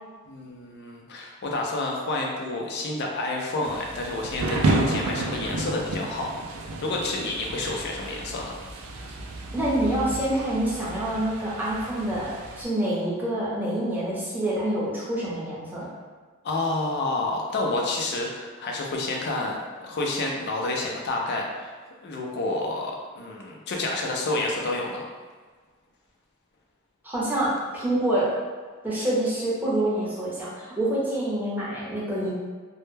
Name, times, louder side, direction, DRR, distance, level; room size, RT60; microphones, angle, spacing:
voice 1, 0.3-6.3 6.5-8.6 16.4-21.7 22.0-25.1, left 2 dB, 50° left, 0 dB, 0.4 m, -29 dB
Thunder / Rain, 3.6-12.6, right 2 dB, 75° right, 0.3 m, -31 dB
voice 2, 9.5-15.9 27.0-28.4 28.8-32.3, right 1 dB, 10° right, -8 dB, 0.6 m, -26 dB
2.1 x 2.1 x 3.1 m, 1.5 s
head